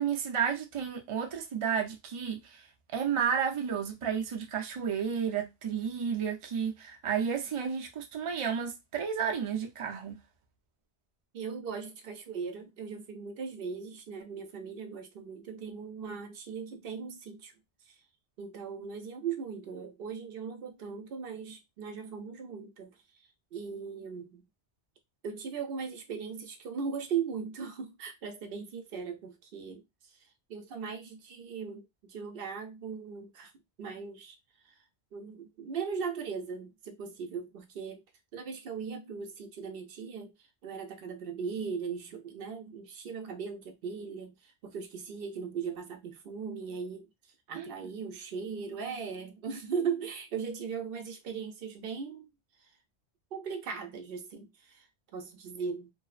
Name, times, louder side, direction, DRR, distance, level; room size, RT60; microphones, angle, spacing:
voice 1, 0.0-2.6 2.9-10.2 47.6-47.7, right 7 dB, 50° right, 0.4 m, -32 dB
voice 2, 11.3-17.5 17.8-18.0 18.4-24.5 25.2-30.2 30.5-33.5 33.8-34.4 34.6-34.7 35.1-38.0 38.3-40.3 40.6-47.1 47.5-52.3 52.6-52.7 53.3-55.9, right 6 dB, 65° right, 0.7 m, -38 dB
2.5 x 2.0 x 2.4 m
omnidirectional pair, 1.1 m